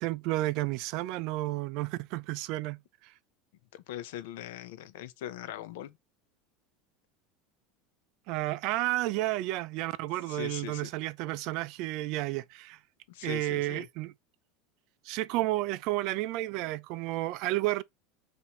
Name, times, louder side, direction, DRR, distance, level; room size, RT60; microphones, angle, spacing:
voice 1, 0.0-3.1 8.3-12.8 13.2-14.1 15.1-17.8, right 17 dB, 55° right, 0.3 m, -31 dB
voice 2, 3.7-6.0 10.3-10.9 13.1-13.9, left 12 dB, 80° left, 0.6 m, -41 dB
5.7 x 2.6 x 3.1 m
supercardioid pair, 155°, 0 cm